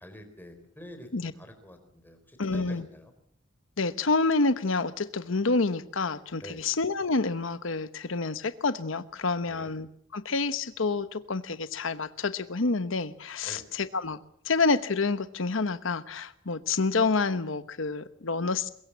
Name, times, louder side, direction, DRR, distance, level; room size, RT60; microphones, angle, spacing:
voice 1, 0.0-1.8 2.0-3.1 6.4-6.6 9.4-9.7 13.4-13.7, left 1 dB, 10° left, 6 dB, 4.3 m, -47 dB
voice 2, 2.4-2.9 3.8-14.2 14.4-18.7, left 3 dB, 80° left, 12 dB, 1.0 m, -28 dB
23.0 x 22.0 x 7.4 m, 0.66 s
head